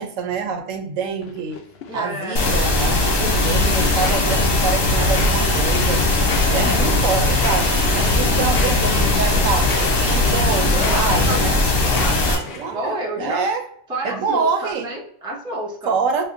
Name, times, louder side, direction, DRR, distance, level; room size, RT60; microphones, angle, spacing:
voice 1, 0.0-1.6 1.9-6.0 6.5-11.6 12.5-13.6 14.0-14.9 15.9-16.2, right 5 dB, 80° right, 5 dB, 1.0 m, -26 dB
sound 1, 1.2-12.8, left 4 dB, 60° left, 0.7 m, -28 dB
voice 2, 1.9-2.4 6.5-6.9 10.7-11.4 11.8-12.4 12.7-13.5 13.9-15.9, right 1 dB, 5° right, -1 dB, 0.4 m, -29 dB
sound 2, 2.4-12.4, left 2 dB, 85° left, 1.3 m, -19 dB
5.6 x 2.1 x 2.5 m, 0.63 s
omnidirectional pair, 1.3 m